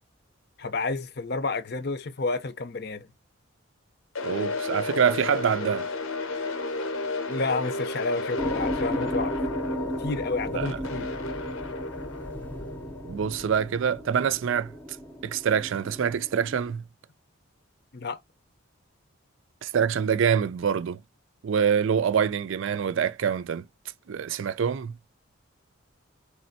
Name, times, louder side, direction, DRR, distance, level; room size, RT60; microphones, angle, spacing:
voice 1, 0.6-3.1 7.3-9.4 10.0-11.1 17.9-18.2, left 3 dB, 50° left, 0.6 m, -30 dB
sound 1, 4.1-14.2, left 3 dB, 80° left, 0.9 m, -33 dB
voice 2, 4.2-5.9 10.5-10.8 13.0-14.7 15.2-16.8 19.6-21.0 21.4-23.7 24.1-25.0, right 7 dB, 70° right, 0.4 m, -25 dB
sound 2, 8.4-16.7, equal, 10° left, 0.7 m, -35 dB
4.2 x 3.4 x 2.6 m
head